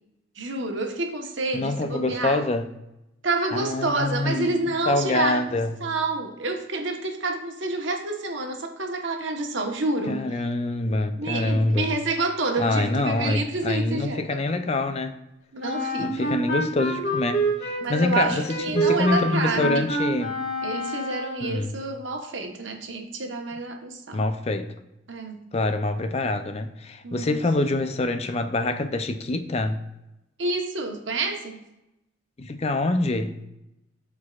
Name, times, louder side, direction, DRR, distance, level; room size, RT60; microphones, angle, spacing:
voice 1, 0.4-2.4 3.2-5.5 5.8-10.3 11.1-14.4 15.5-16.3 17.8-19.9 20.6-24.2 25.1-25.4 27.0-27.4 30.4-31.6, right 2 dB, 70° right, 1.2 m, -28 dB
voice 2, 1.5-2.7 3.5-5.8 10.1-12.0 12.6-15.2 16.0-20.4 21.4-21.8 24.1-24.7 25.5-29.8 32.4-33.4, left 2 dB, 30° left, 0.5 m, -25 dB
Wind instrument woodwind instrument, 15.6-21.5, right 1 dB, 50° left, 2.0 m, -27 dB
12.5 x 4.6 x 2.4 m
head